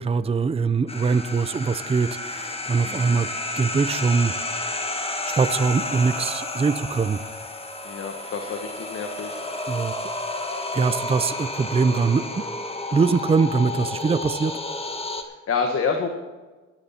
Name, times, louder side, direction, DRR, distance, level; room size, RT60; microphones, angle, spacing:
voice 1, 0.0-3.3 3.6-4.3 5.3-7.2 9.7-9.9 10.7-12.2 12.9-14.5, right 5 dB, 20° right, 13 dB, 0.5 m, -22 dB
sound 1, 0.9-15.2, left 2 dB, 20° left, 1.4 m, -31 dB
voice 2, 2.8-3.2 7.8-9.4 15.2-16.1, left 5 dB, 50° left, 4 dB, 1.4 m, -28 dB
14.5 x 11.0 x 4.3 m, 1.2 s
cardioid pair, 90°, 30 cm